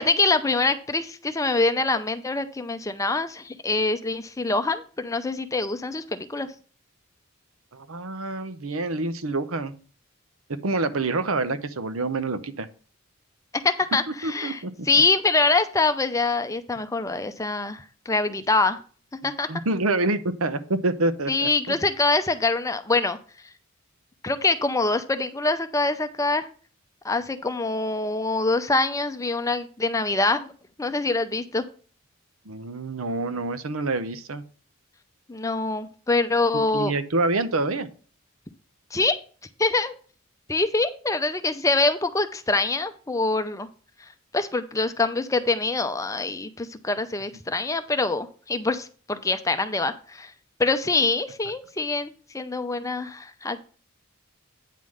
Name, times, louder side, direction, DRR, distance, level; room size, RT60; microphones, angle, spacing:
voice 1, 0.0-6.5 13.6-18.8 19.2-19.5 21.3-23.2 24.2-26.5 27.0-30.5 30.8-31.6 35.3-36.9 38.9-39.2 39.6-39.9 40.5-43.7 44.3-50.3 50.6-53.6, left 3 dB, 15° left, 9 dB, 0.6 m, -24 dB
voice 2, 7.7-9.7 10.6-12.7 14.2-14.7 19.2-21.5 32.5-34.4 36.7-37.9, right 2 dB, 75° right, 12 dB, 0.8 m, -27 dB
9.2 x 3.8 x 6.3 m, 0.39 s
head